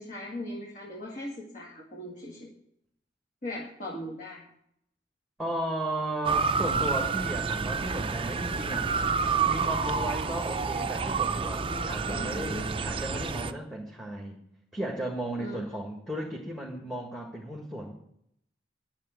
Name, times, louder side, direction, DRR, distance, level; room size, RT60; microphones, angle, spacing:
voice 1, 0.0-2.5 3.4-4.4 12.1-12.8 15.4-15.6, left 1 dB, 40° left, -2 dB, 2.1 m, -39 dB
voice 2, 5.4-8.9 9.5-14.4 14.7-17.9, right 1 dB, ahead, -1 dB, 1.6 m, -35 dB
Motor vehicle (road) / Siren, 6.2-13.5, right 5 dB, 30° right, 0.5 m, -29 dB
10.5 x 7.2 x 9.1 m, 0.72 s
head